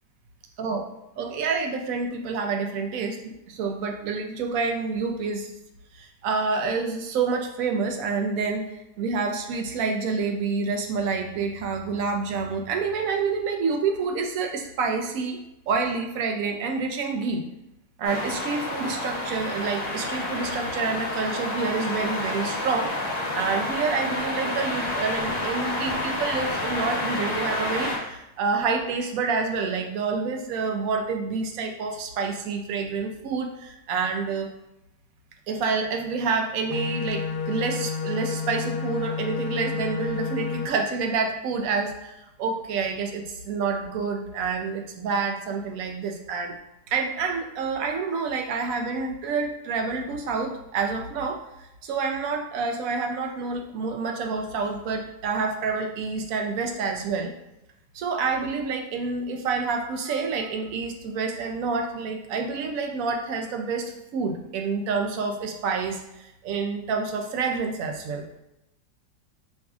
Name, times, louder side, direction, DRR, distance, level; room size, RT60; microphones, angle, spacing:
voice 1, 1.2-5.5 5.9-8.7 9.0-15.4 15.7-17.4 18.0-22.9 23.4-34.5 35.5-46.6 46.9-57.3 57.9-68.2, right 4 dB, 70° right, 4 dB, 0.9 m, -28 dB
sound 1, 18.0-28.0, left 1 dB, 45° left, 0.5 m, -29 dB
sound 2, 36.7-40.7, left 5 dB, 90° left, 1.2 m, -30 dB
5.4 x 2.6 x 2.3 m, 0.89 s
omnidirectional pair, 1.7 m